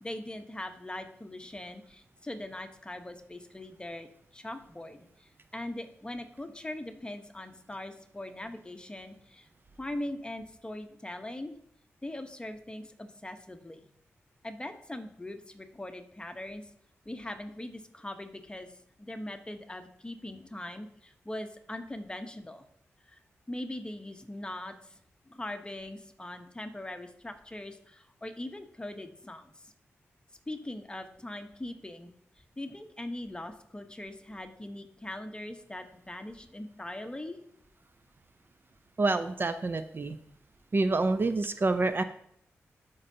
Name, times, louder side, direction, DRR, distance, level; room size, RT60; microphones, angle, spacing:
voice 1, 0.0-9.5 9.8-11.5 12.0-13.8 14.4-16.7 17.0-22.6 23.1-23.2 23.5-25.0 25.3-29.7 30.5-37.4, left 1 dB, 20° left, 7 dB, 1.0 m, -41 dB
voice 2, 39.0-40.2 40.7-42.0, right 3 dB, 45° right, 10 dB, 0.5 m, -27 dB
13.0 x 5.4 x 2.8 m, 0.68 s
cardioid pair, 50°, 5 cm